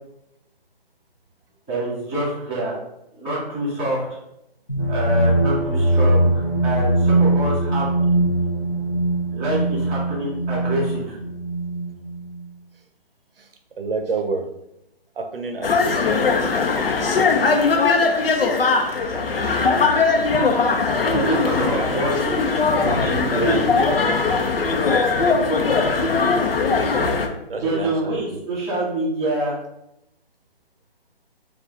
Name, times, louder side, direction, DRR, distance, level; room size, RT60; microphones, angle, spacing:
voice 1, 1.7-2.8 3.1-4.0 4.9-6.3 6.6-8.0 9.3-11.2 21.0-22.4 22.7-23.8 27.6-29.6, right 1 dB, 5° left, -14 dB, 1.3 m, -26 dB
sound 1, 4.7-12.4, right 1 dB, 25° left, 0.7 m, -21 dB
voice 2, 13.8-14.5 15.2-16.4 18.2-18.3 26.7-28.4, right 4 dB, 65° right, 6 dB, 0.7 m, -29 dB
sound 2, 15.6-27.3, left 4 dB, 70° left, 0.7 m, -20 dB
4.8 x 2.4 x 3.7 m, 0.83 s
hypercardioid pair, 175°, 30 cm